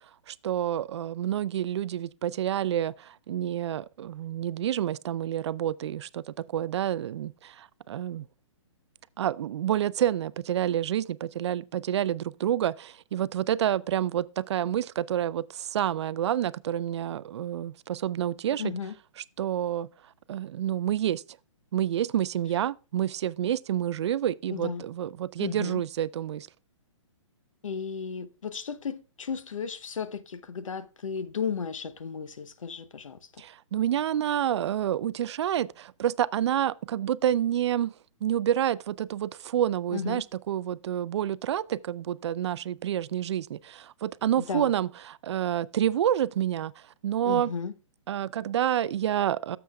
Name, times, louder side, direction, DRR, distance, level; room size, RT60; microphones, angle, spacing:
voice 1, 0.3-8.3 9.2-18.7 19.4-19.9 20.3-21.2 21.7-26.5 33.4-37.9 38.2-47.5 48.1-49.6, right 11 dB, 60° right, 0.4 m, -28 dB
voice 2, 18.6-18.9 24.5-24.8 25.4-25.8 27.6-33.4 39.9-40.2 44.4-44.7 47.2-47.7, left 6 dB, 85° left, 0.7 m, -34 dB
12.0 x 7.0 x 2.3 m
hypercardioid pair, 145°, 16 cm